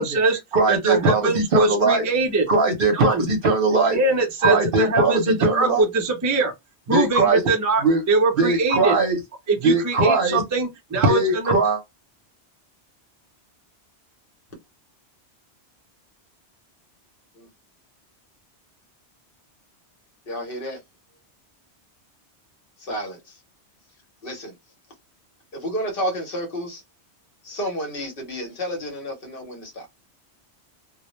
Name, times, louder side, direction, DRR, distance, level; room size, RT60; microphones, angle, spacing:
voice 1, 0.0-0.4 0.7-2.4 2.9-3.3 3.9-6.5 6.9-8.9 9.5-11.5, right 3 dB, 30° right, 0.3 m, -22 dB
voice 2, 0.5-2.1 2.5-4.0 4.4-5.9 6.9-7.4 7.8-8.0 8.4-9.2 9.6-10.4 11.0-11.8, right 3 dB, 60° right, 0.7 m, -20 dB
voice 3, 20.3-20.8 22.8-23.3 24.2-24.5 25.5-26.8 27.4-29.9, equal, 55° left, 1.0 m, -31 dB
2.1 x 2.1 x 2.9 m
omnidirectional pair, 1.1 m